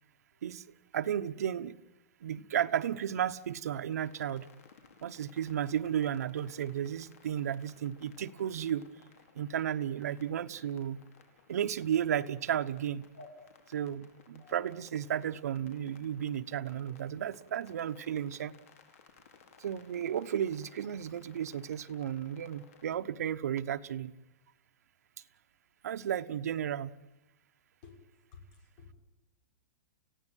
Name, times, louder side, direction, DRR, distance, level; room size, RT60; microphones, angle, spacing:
voice 1, 0.9-1.7 2.2-4.5 5.0-8.9 9.3-11.0 11.5-13.0 13.7-18.5 19.6-24.1 25.8-26.9, right 9 dB, 80° right, 9 dB, 1.1 m, -33 dB
sound 1, 3.9-23.0, left 6 dB, 65° left, 4.9 m, -60 dB
voice 2, 14.2-14.5 16.9-17.0 27.8-28.0 28.3-28.9, left 4 dB, 40° left, 3 dB, 5.8 m, -54 dB
29.5 x 16.5 x 9.2 m, 0.95 s
supercardioid pair, 170°, 8 cm